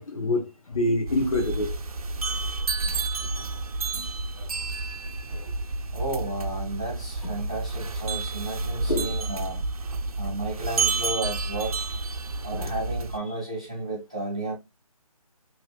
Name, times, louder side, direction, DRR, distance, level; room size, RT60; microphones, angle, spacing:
voice 1, 0.0-1.8 2.3-2.4 3.3-3.5 3.9-4.1 4.4-4.5 5.3-5.5 7.2-7.3 8.9-9.1 12.5-12.7, left 1 dB, 70° left, 1.1 m, -28 dB
sound 1, 1.1-13.2, right 3 dB, 75° right, 0.5 m, -30 dB
voice 2, 5.9-9.8 10.2-12.0 12.4-14.5, right 2 dB, 10° right, 0.3 m, -33 dB
3.0 x 2.5 x 3.0 m
figure-of-eight pair, 160°, 19 cm